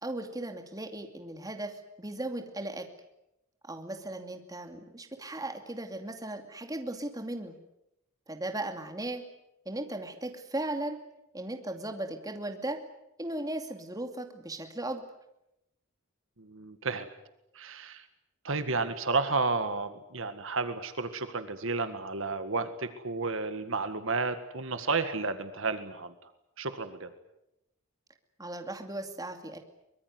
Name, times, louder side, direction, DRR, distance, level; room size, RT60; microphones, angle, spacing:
voice 1, 0.0-2.9 3.6-7.6 8.3-9.2 9.7-11.0 11.3-12.8 13.2-15.0 28.4-29.6, right 1 dB, 15° right, 5 dB, 2.5 m, -37 dB
voice 2, 16.4-17.1 17.6-18.1 18.4-26.1 26.6-27.1, right 3 dB, 60° right, 10 dB, 1.8 m, -32 dB
24.0 x 21.5 x 9.6 m, 0.85 s
head